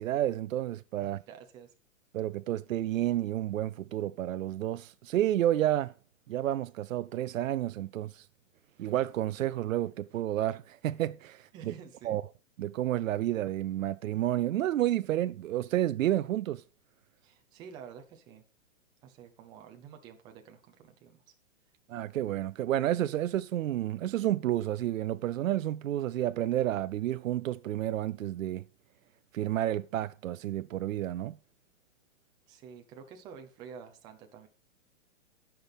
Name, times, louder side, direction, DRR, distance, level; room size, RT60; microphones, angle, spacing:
voice 1, 0.0-1.2 2.1-5.9 6.3-8.3 8.8-11.7 12.0-12.2 12.6-16.6 21.9-28.6 29.3-31.4, right 13 dB, 85° right, 0.5 m, -30 dB
voice 2, 1.0-1.7 11.5-12.2 17.2-18.4 19.0-21.3 32.5-34.5, right 7 dB, 10° right, 0.6 m, -49 dB
17.0 x 5.9 x 3.5 m
hypercardioid pair, 160°, 39 cm